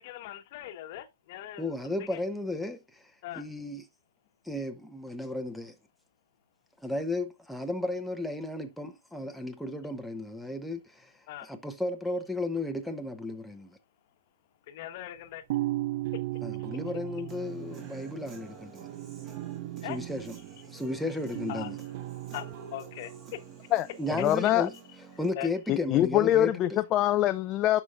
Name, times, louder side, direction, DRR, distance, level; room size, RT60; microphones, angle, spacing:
voice 1, 0.0-2.2 3.2-3.5 11.3-11.5 14.7-15.5 16.1-16.2 16.5-17.0 19.7-20.0 21.5-23.7 24.2-24.5 25.1-25.5, left 13 dB, 40° left, 1.1 m, -42 dB
voice 2, 1.6-2.8 3.4-3.8 4.5-5.7 6.8-11.1 11.4-13.8 16.4-18.9 19.9-20.3 20.7-21.8 24.0-24.7 25.2-26.8, left 2 dB, ahead, 0.8 m, -34 dB
sound 1, 15.5-23.7, right 16 dB, 45° right, 0.3 m, -37 dB
Human voice / Guitar, 17.3-25.3, right 6 dB, 25° right, 2.4 m, -49 dB
voice 3, 24.2-24.7 25.7-27.8, left 13 dB, 25° left, 0.4 m, -24 dB
11.0 x 5.5 x 2.4 m
figure-of-eight pair, 120°, 0 cm